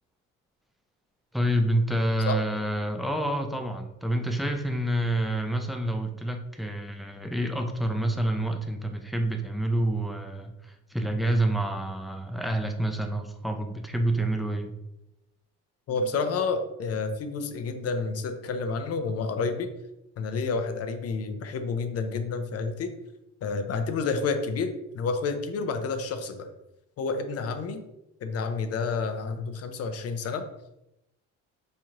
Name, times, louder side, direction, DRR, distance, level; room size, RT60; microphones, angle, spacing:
voice 1, 1.3-14.7, right 1 dB, ahead, 5 dB, 0.4 m, -28 dB
voice 2, 15.9-19.7 20.2-22.9 23.4-26.5 27.0-27.8 28.2-30.4, left 4 dB, 50° left, 8 dB, 0.6 m, -29 dB
4.1 x 2.9 x 2.5 m, 0.88 s
supercardioid pair, 90°, 33 cm